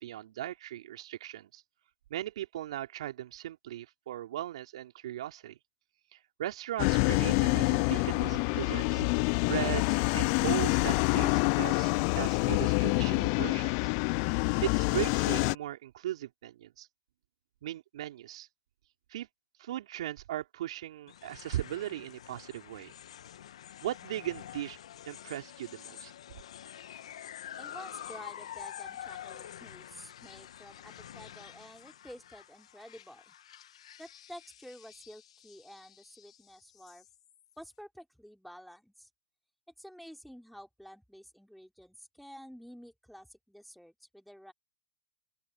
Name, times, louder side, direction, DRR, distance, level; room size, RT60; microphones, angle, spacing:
voice 1, 0.0-1.6 2.1-5.6 6.1-9.0 9.4-13.9 14.6-16.9 17.6-18.5 19.1-19.3 19.6-22.9 23.8-24.8 25.1-26.1, right 13 dB, 65° right, 3.7 m, -38 dB
sound 1, 6.8-15.5, left 33 dB, 40° left, 0.4 m, -27 dB
sound 2, 21.1-37.5, left 10 dB, 70° left, 1.1 m, -48 dB
voice 2, 27.6-33.4 34.0-37.1 37.6-39.1 39.8-44.5, equal, ahead, 3.4 m, -50 dB
open air
hypercardioid pair, 125°, 3 cm